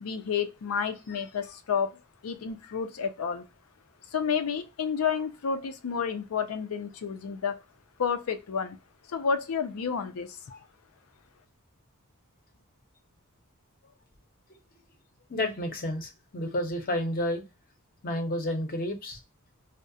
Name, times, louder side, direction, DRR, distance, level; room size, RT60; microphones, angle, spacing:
voice 1, 0.0-3.4 4.1-7.6 8.0-8.8 9.1-10.4, left 6 dB, 85° left, 0.4 m, -30 dB
voice 2, 15.3-17.4 18.0-19.2, left 1 dB, 45° left, 0.7 m, -31 dB
2.3 x 2.1 x 2.5 m
head